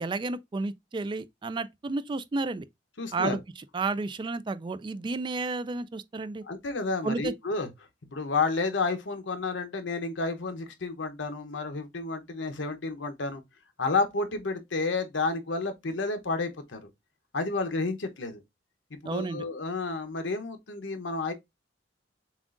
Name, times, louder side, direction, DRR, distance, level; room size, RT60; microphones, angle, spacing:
voice 1, 0.0-2.7 3.1-3.4 3.7-6.4 7.0-7.3 19.0-19.4, right 3 dB, 25° right, 0.3 m, -31 dB
voice 2, 3.0-3.4 6.5-7.7 8.1-13.4 13.8-16.9 17.3-18.4 18.9-21.3, left 3 dB, 85° left, 0.9 m, -31 dB
7.1 x 2.4 x 2.5 m
head